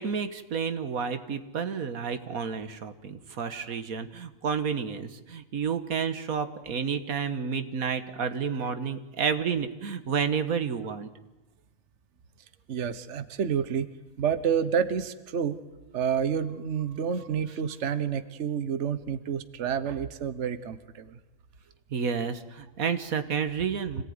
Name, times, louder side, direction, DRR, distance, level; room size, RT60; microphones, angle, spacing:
voice 1, 0.0-11.1 21.9-24.0, right 6 dB, 90° right, 10 dB, 1.8 m, -30 dB
voice 2, 3.4-3.8 12.7-13.9 14.2-15.6 15.9-21.2, right 7 dB, 60° right, 12 dB, 1.3 m, -29 dB
26.5 x 18.0 x 9.6 m, 1.0 s
omnidirectional pair, 1.4 m